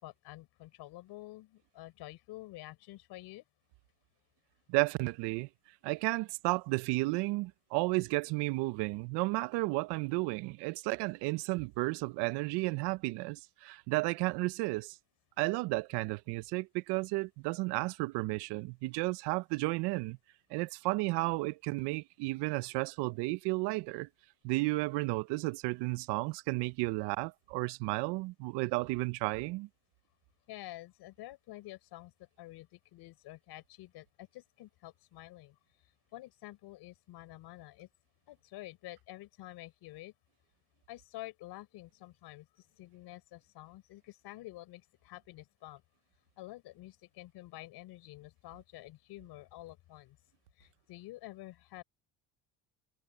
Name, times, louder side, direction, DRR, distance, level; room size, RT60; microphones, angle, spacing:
voice 1, 0.0-3.4 30.5-32.1 32.4-35.6 36.1-37.9 38.3-40.1 40.9-42.5 42.8-45.8 46.4-50.2 50.6-51.8, left 16 dB, 70° left, 4.2 m, -49 dB
voice 2, 4.7-5.5 5.8-15.0 15.4-20.2 20.5-24.1 24.4-29.7, right 24 dB, 80° right, 0.7 m, -33 dB
supercardioid pair, 95°, 40 cm